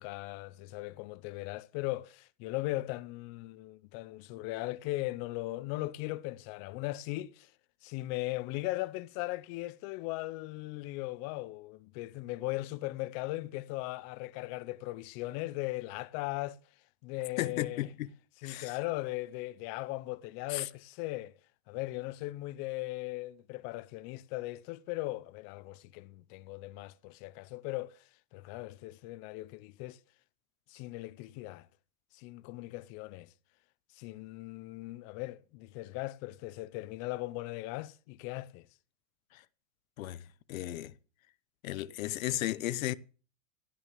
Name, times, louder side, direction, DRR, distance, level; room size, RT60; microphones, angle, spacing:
voice 1, 0.0-7.5 7.8-16.6 17.0-17.9 18.4-21.3 21.7-28.0 28.3-30.0 30.7-31.7 32.1-33.3 34.0-38.7, left 19 dB, 40° left, 0.7 m, -38 dB
voice 2, 17.4-18.1 18.4-18.8 20.5-20.7 39.3-39.4 40.0-40.2 40.5-40.9 41.6-42.9, left 15 dB, 80° left, 0.9 m, -34 dB
16.0 x 6.8 x 7.5 m
supercardioid pair, 145°, 40 cm